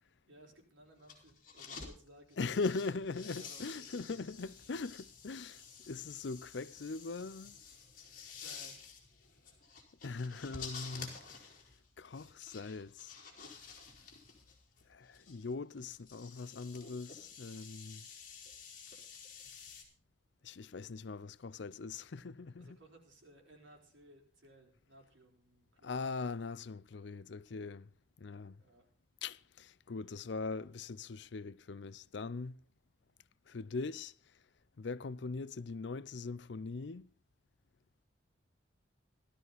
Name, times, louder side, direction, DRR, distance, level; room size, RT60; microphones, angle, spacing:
voice 1, 0.3-4.2 8.4-8.8 22.6-26.0 28.6-28.9, right 1 dB, 75° right, 4.4 m, -60 dB
sound 1, 1.0-1.9 2.3-19.8, left 6 dB, 45° left, 3.9 m, -51 dB
voice 2, 2.4-7.6 10.0-11.4 12.0-13.1 14.9-18.0 20.4-22.8 25.8-27.9 28.2-28.6 29.2-32.6 33.5-34.1 34.8-37.1, left 4 dB, 65° left, 0.5 m, -41 dB
16.5 x 13.0 x 4.0 m
head